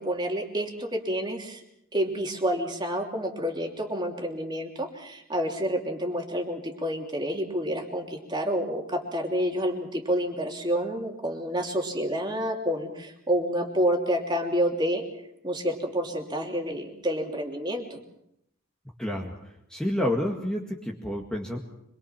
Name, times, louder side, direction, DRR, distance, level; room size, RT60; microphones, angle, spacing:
voice 1, 0.0-1.6 1.9-15.0 15.4-18.0, equal, 20° right, 2 dB, 3.0 m, -29 dB
voice 2, 19.0-19.3 19.7-21.6, left 1 dB, 5° left, -1 dB, 2.0 m, -29 dB
25.5 x 22.5 x 5.9 m, 0.76 s
head